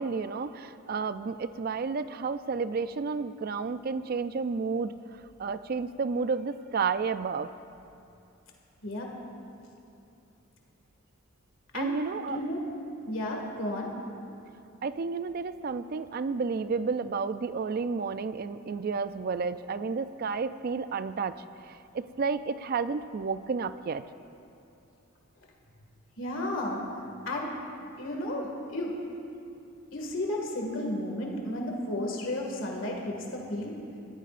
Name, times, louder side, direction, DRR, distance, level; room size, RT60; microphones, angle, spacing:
voice 1, 0.0-4.9 5.4-7.5 11.7-12.4 14.8-24.0, right 5 dB, 45° right, 13 dB, 0.3 m, -31 dB
voice 2, 12.3-12.6 13.1-13.9 26.2-26.8 27.3-27.5 28.0-28.9 29.9-33.8, left 1 dB, 65° left, 0 dB, 2.0 m, -33 dB
20.0 x 14.5 x 2.5 m, 2.7 s
head